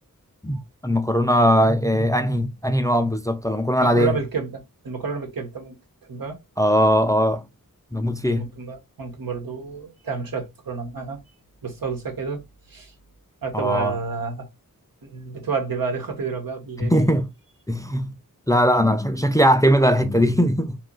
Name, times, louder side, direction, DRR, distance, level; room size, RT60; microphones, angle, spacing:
voice 1, 0.4-4.2 6.6-7.4 7.9-8.6 13.5-13.9 16.8-17.3 17.7-18.1 18.5-20.8, equal, 10° left, 0.4 m, -20 dB
voice 2, 3.8-5.8 6.1-6.4 8.2-11.2 11.6-12.4 12.7-12.9 13.4-14.5 15.0-16.9, right 5 dB, 90° right, 1.2 m, -30 dB
2.9 x 2.4 x 3.7 m
wide cardioid pair, 70°, 34 cm